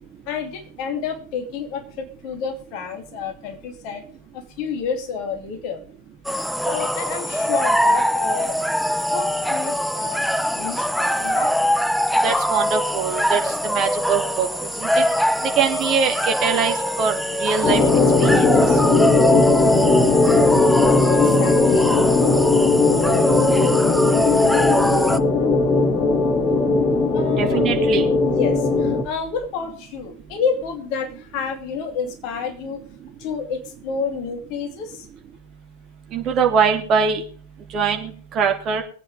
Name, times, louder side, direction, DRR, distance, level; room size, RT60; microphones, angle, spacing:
voice 1, 0.3-4.0 4.3-5.8 6.6-8.6 9.1-11.5 21.1-21.9 27.1-27.6 28.2-32.8 33.2-35.1, left 6 dB, 40° left, 6 dB, 2.5 m, -29 dB
sound 1, 6.2-25.2, equal, ahead, 0.7 m, -23 dB
voice 2, 12.2-14.5 14.8-15.0 15.6-17.8 18.2-18.5 27.4-28.0 36.1-37.2 37.7-38.8, right 6 dB, 30° right, 3 dB, 2.8 m, -22 dB
sound 2, 17.6-29.0, left 3 dB, 25° left, 2.2 m, -18 dB
23.0 x 8.9 x 3.6 m, 0.42 s
figure-of-eight pair, 90°, 0 cm